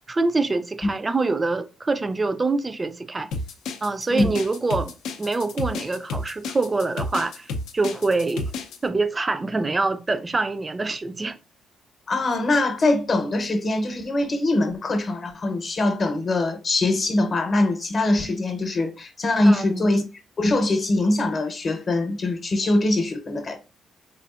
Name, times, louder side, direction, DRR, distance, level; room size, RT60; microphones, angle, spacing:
voice 1, 0.0-3.3 3.8-4.9 5.2-8.5 8.8-11.4 19.4-19.9, right 3 dB, 25° right, 0.3 m, -25 dB
sound 1, 3.3-8.8, left 2 dB, 85° left, 0.4 m, -31 dB
voice 2, 12.1-20.0 20.4-23.6, left 2 dB, 40° left, 0.7 m, -22 dB
3.5 x 2.4 x 2.4 m
cardioid pair, 90°, 0 cm